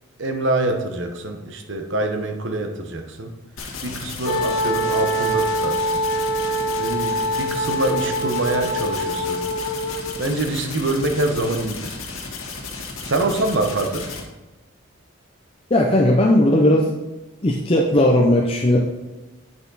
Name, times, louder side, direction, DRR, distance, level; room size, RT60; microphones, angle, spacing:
voice 1, 0.2-3.3 3.8-6.0 6.8-9.4 10.2-12.0 13.0-14.1, right 2 dB, 55° right, 5 dB, 1.0 m, -25 dB
sound 1, 3.6-14.2, left 4 dB, 75° left, 1.7 m, -34 dB
Wind instrument woodwind instrument, 4.2-10.2, equal, 50° left, 1.0 m, -24 dB
voice 2, 15.7-16.9 17.4-18.8, left 1 dB, 25° left, 0 dB, 0.6 m, -17 dB
9.2 x 6.1 x 4.1 m, 1.1 s
head